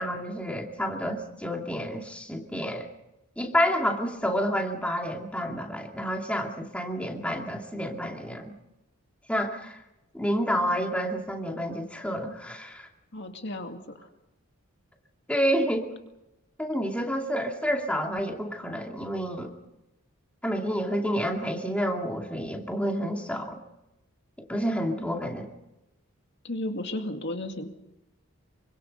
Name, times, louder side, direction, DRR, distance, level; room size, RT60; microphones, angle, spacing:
voice 1, 0.0-2.9 3.4-8.5 9.3-9.8 10.1-12.9 15.3-15.9 16.6-19.5 20.4-23.6 24.4-25.5, equal, 5° left, 1 dB, 2.6 m, -29 dB
voice 2, 13.1-14.1 26.4-27.7, left 1 dB, 50° left, 4 dB, 2.3 m, -34 dB
27.0 x 25.0 x 5.4 m, 0.92 s
head